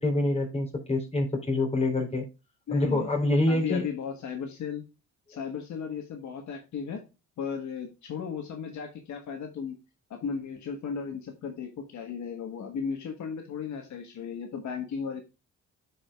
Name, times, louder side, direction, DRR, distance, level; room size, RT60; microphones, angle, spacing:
voice 1, 0.0-2.2 2.7-3.9, left 2 dB, 20° left, 3.6 m, -26 dB
voice 2, 2.7-3.1 3.5-4.8 5.3-7.0 7.4-9.7 10.1-15.2, left 6 dB, 70° left, 1.4 m, -35 dB
12.5 x 5.0 x 2.3 m
cardioid pair, 90°, 30 cm